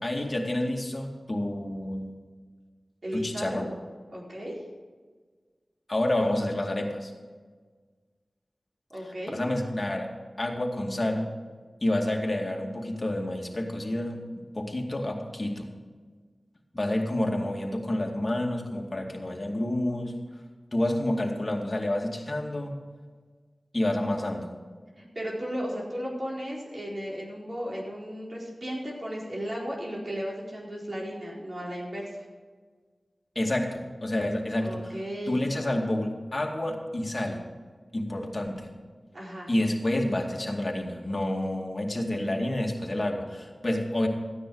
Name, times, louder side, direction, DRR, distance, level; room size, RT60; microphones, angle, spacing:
voice 1, 0.0-2.1 3.1-3.7 5.9-7.1 9.3-10.1 10.4-11.3 11.8-14.2 14.5-15.7 16.7-20.2 20.7-22.7 23.7-24.5 33.4-34.9 35.3-37.4 37.9-38.7 39.5-44.1, left 1 dB, 40° left, 0 dB, 2.3 m, -29 dB
voice 2, 3.0-3.6 4.1-4.6 8.9-9.3 25.0-32.1 34.6-35.4 39.1-39.5, equal, 55° right, -4 dB, 4.4 m, -35 dB
15.0 x 9.9 x 4.9 m, 1.5 s
wide cardioid pair, 55°, 0 cm